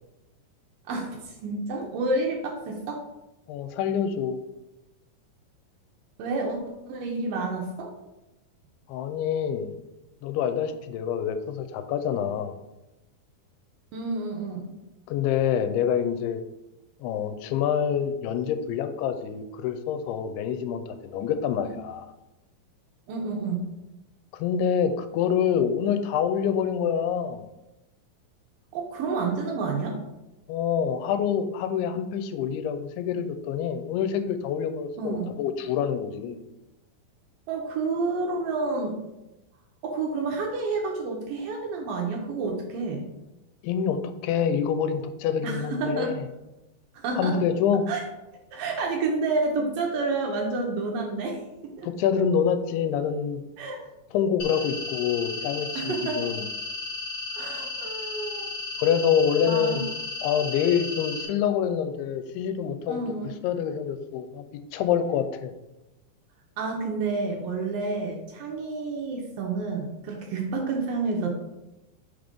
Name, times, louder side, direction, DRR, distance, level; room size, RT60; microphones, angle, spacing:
voice 1, 0.9-3.0 6.2-6.6 6.9-7.9 13.9-14.8 21.6-21.8 23.1-23.7 28.7-30.0 35.0-35.4 37.5-39.0 39.8-43.1 45.4-46.1 46.9-47.4 47.9-48.0 48.5-51.4 51.6-51.9 53.6-53.8 55.8-56.3 57.3-58.5 59.5-59.8 62.9-63.3 66.6-71.3, right 3 dB, 75° right, 1 dB, 2.2 m, -29 dB
voice 2, 3.5-4.4 8.9-9.7 10.2-12.6 15.1-16.4 17.0-22.1 24.3-27.4 30.5-36.4 43.6-46.2 47.2-47.8 51.8-53.4 54.1-56.5 58.8-59.9 60.2-64.4 64.7-65.5, left 8 dB, 85° left, 9 dB, 2.6 m, -26 dB
sound 1, 54.4-61.2, left 3 dB, 55° left, 2.2 m, -34 dB
6.3 x 3.5 x 5.2 m, 0.96 s
omnidirectional pair, 4.5 m